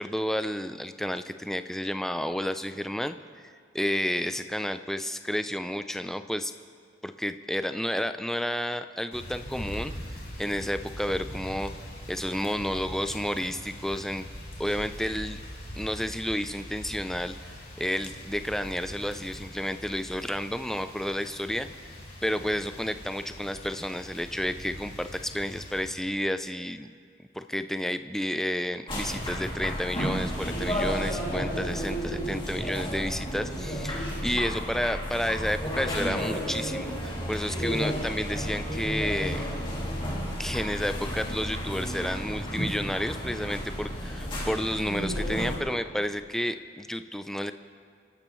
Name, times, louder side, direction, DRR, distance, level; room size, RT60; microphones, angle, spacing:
voice 1, 0.0-3.2 3.4-6.5 7.0-11.7 12.1-14.3 14.6-15.4 15.8-17.5 17.8-21.7 22.2-26.9 27.3-39.5 40.4-47.5, equal, ahead, 9 dB, 0.3 m, -31 dB
sound 1, 9.1-25.9, equal, 50° left, 3.1 m, -42 dB
sound 2, 28.9-45.6, equal, 25° left, 2.6 m, -32 dB
28.0 x 12.5 x 3.1 m, 2.2 s
head